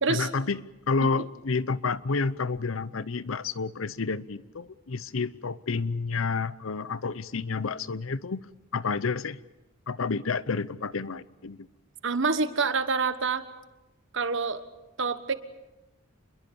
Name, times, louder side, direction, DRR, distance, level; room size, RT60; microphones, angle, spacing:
voice 1, 0.1-8.4 8.7-9.4 9.9-11.7, left 4 dB, 70° left, 17 dB, 0.8 m, -30 dB
voice 2, 12.0-13.4 14.1-14.6 15.0-15.3, right 4 dB, 60° right, 11 dB, 1.4 m, -26 dB
27.5 x 22.0 x 7.0 m, 1.0 s
head